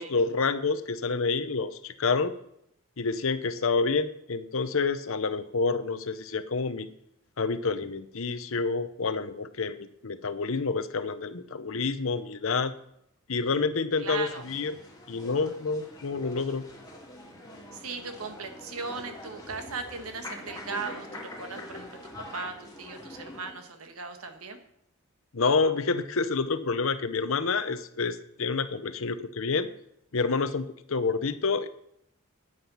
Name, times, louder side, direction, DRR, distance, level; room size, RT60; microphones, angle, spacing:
voice 1, 0.0-2.3 3.0-6.9 7.4-12.7 13.3-14.7 15.1-16.6 25.3-29.7 30.1-31.7, left 4 dB, 65° left, 12 dB, 0.8 m, -28 dB
voice 2, 14.0-14.4 17.7-21.1 21.4-22.0 22.3-24.6, right 4 dB, 90° right, 6 dB, 1.5 m, -37 dB
sound 1, 14.2-23.5, left 1 dB, 20° left, 3.2 m, -44 dB
9.5 x 8.9 x 5.6 m, 0.76 s
head